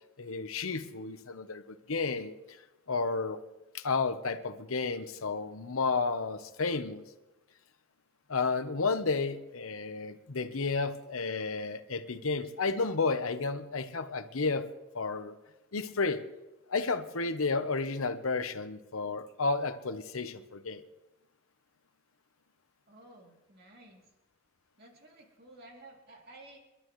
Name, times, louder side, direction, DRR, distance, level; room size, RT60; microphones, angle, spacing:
voice 1, 0.2-2.3 2.9-3.4 3.7-7.0 8.3-14.7 14.9-15.3 15.7-16.2 16.7-20.8, left 4 dB, 85° left, 10 dB, 0.9 m, -32 dB
voice 2, 22.9-24.1 24.8-26.6, right 2 dB, 50° right, -1 dB, 2.9 m, -54 dB
28.5 x 12.0 x 3.2 m, 1.0 s
head